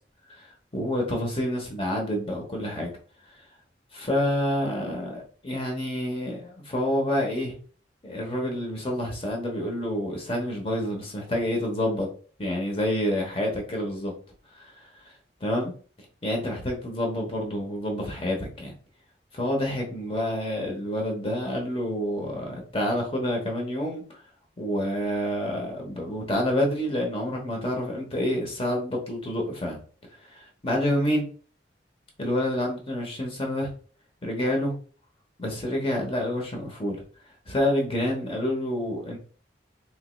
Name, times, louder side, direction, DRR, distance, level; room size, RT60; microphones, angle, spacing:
voice 1, 0.3-2.9 3.9-7.5 8.0-12.1 12.4-14.1 14.6-14.7 15.4-15.7 16.2-18.7 19.3-24.0 24.6-29.8 30.3-31.3 32.2-33.7 34.2-34.7 35.4-37.0 37.5-39.2, left 1 dB, 30° left, 1 dB, 1.0 m, -28 dB
4.5 x 3.0 x 2.3 m, 0.42 s
head